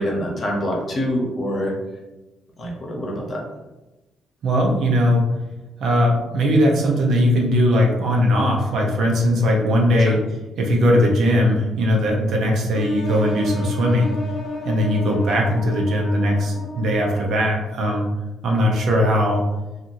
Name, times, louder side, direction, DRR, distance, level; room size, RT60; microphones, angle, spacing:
voice 1, 0.0-1.7 2.6-3.4 10.1-10.2, equal, 45° left, -1 dB, 0.9 m, -25 dB
voice 2, 4.4-5.3 5.8-10.2 10.6-14.1 14.6-18.1 18.4-19.4, equal, 70° right, 0 dB, 0.7 m, -19 dB
sound 1, 12.7-17.6, left 2 dB, 80° left, 0.7 m, -32 dB
2.8 x 2.5 x 2.6 m, 1.1 s
cardioid pair, 90°, 0 cm